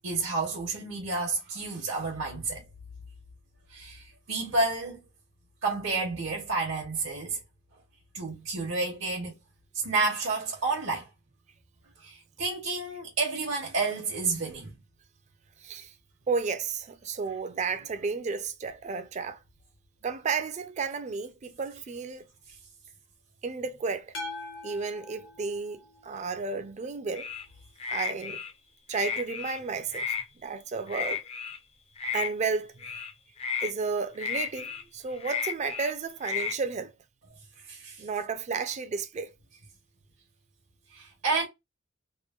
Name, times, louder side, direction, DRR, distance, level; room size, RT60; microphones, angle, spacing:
voice 1, 0.0-2.6 3.7-5.0 5.6-7.4 8.1-9.3 9.7-11.1 12.0-14.8 37.7-38.1 40.9-41.4, right 3 dB, 75° right, 0.8 m, -30 dB
voice 2, 16.3-19.4 20.0-22.3 23.4-24.1 24.6-25.8 26.0-27.3 27.9-28.4 28.9-30.1 30.4-31.2 32.1-33.0 33.6-36.9 38.0-39.3, right 4 dB, 35° right, 0.4 m, -32 dB
sound 1, 24.1-26.4, left 2 dB, 85° left, 1.1 m, -42 dB
sound 2, 27.1-27.4 27.8-28.5 28.9-29.6 29.9-30.2 30.9-31.6 32.0-32.3 32.8-33.1 33.4-33.7 34.2-34.8 35.2-35.9 36.2-36.5, left 6 dB, 30° left, 0.4 m, -33 dB
2.9 x 2.1 x 2.3 m
head